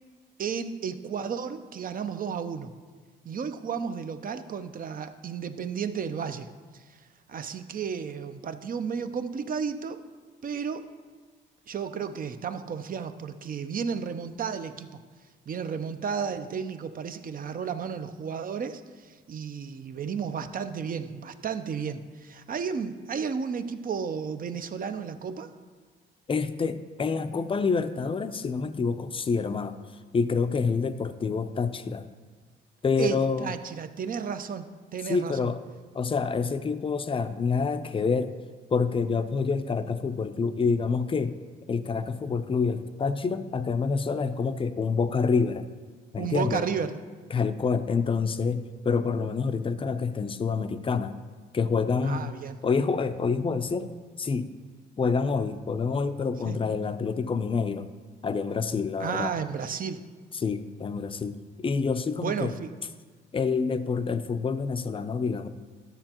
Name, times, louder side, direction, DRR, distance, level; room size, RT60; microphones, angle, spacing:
voice 1, 0.4-2.7 3.2-10.0 10.4-10.9 11.7-14.9 15.5-25.5 33.0-35.5 46.2-47.0 52.0-52.6 56.4-56.6 59.0-60.1 62.2-62.7, right 6 dB, 45° right, 10 dB, 0.6 m, -33 dB
voice 2, 26.3-29.8 30.1-32.1 32.8-33.5 35.1-35.6 35.9-38.3 38.7-41.4 41.7-45.7 46.1-46.6 47.3-51.2 51.5-52.3 52.6-53.9 54.2-54.5 55.0-57.9 58.2-59.3 60.4-62.5 63.3-65.5, left 5 dB, 25° left, 11 dB, 0.5 m, -27 dB
12.5 x 6.7 x 2.9 m, 1.5 s
cardioid pair, 90°, 20 cm